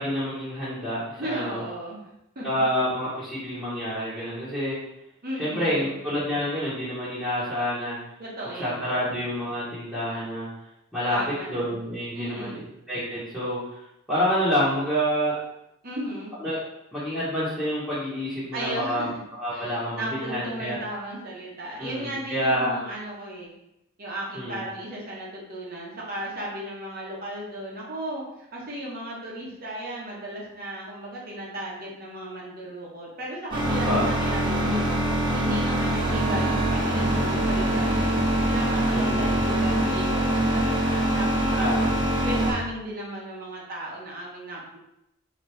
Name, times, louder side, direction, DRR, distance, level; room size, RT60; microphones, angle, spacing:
voice 1, 0.0-1.6 2.4-4.8 5.4-8.0 8.6-10.5 10.9-11.2 11.5-12.6 12.9-13.8 14.1-15.4 16.4-16.6 16.9-19.1 19.4-20.7 21.8-22.8 24.3-24.6 33.8-34.1 38.9-39.4 41.6-41.9, equal, 5° right, -13 dB, 1.2 m, -28 dB
voice 2, 1.2-2.1 2.3-2.7 5.2-6.0 8.2-9.2 11.1-11.7 12.1-12.7 15.8-16.3 18.5-19.1 19.5-23.5 24.0-41.7 42.2-44.8, right 1 dB, 45° right, -4 dB, 1.0 m, -35 dB
sound 1, 33.5-42.5, right 1 dB, 20° right, 0.9 m, -24 dB
4.0 x 2.9 x 3.4 m, 0.84 s
head